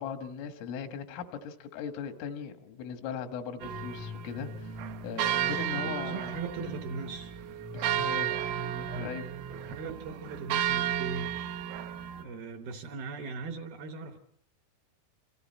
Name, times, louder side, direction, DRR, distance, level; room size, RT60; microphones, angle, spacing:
voice 1, 0.0-6.8 7.7-9.3, left 7 dB, 85° left, 4.1 m, -39 dB
sound 1, 3.6-12.2, right 9 dB, 90° right, 3.8 m, -33 dB
voice 2, 5.7-7.3 8.9-9.1 9.5-11.4 12.2-14.2, right 4 dB, 70° right, 2.3 m, -39 dB
28.5 x 25.5 x 4.3 m
omnidirectional pair, 5.6 m